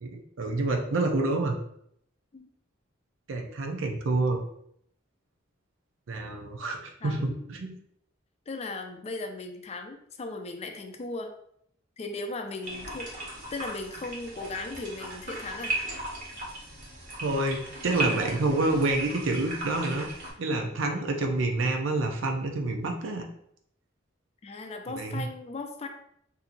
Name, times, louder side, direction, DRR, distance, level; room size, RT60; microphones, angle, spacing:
voice 1, 0.0-1.6 3.3-4.4 6.1-7.8 17.2-23.2 24.9-25.2, right 2 dB, 75° right, 3 dB, 0.6 m, -28 dB
voice 2, 7.0-7.5 8.5-11.3 12.0-13.1 13.5-15.7 20.5-20.8 24.4-25.9, left 3 dB, 35° left, 5 dB, 0.4 m, -37 dB
sound 1, 12.6-20.3, right 2 dB, 45° right, 1.0 m, -36 dB
4.1 x 2.7 x 2.6 m, 0.69 s
head